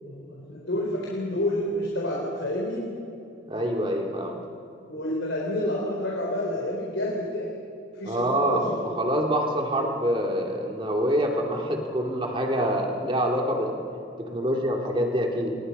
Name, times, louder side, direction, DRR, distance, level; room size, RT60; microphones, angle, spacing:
voice 1, 0.0-2.9 4.9-7.5 8.0-8.7, left 1 dB, 75° left, -3 dB, 4.2 m, -29 dB
voice 2, 3.5-4.4 8.0-13.8 14.2-15.6, equal, 25° right, 1 dB, 2.7 m, -26 dB
28.5 x 24.0 x 5.6 m, 2.7 s
head